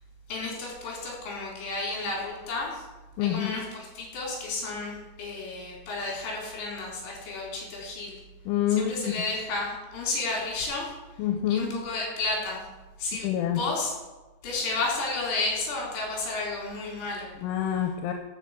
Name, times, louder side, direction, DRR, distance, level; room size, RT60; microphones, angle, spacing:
voice 1, 0.3-2.8 3.2-8.2 8.7-10.9 11.5-12.6 13.0-13.9 14.4-17.3, left 3 dB, 70° left, -3 dB, 5.8 m, -32 dB
voice 2, 3.2-3.7 8.5-9.2 11.2-11.8 13.2-13.6 17.4-18.1, left 10 dB, 85° left, 4 dB, 3.3 m, -27 dB
13.0 x 5.7 x 7.4 m, 1.1 s
omnidirectional pair, 5.5 m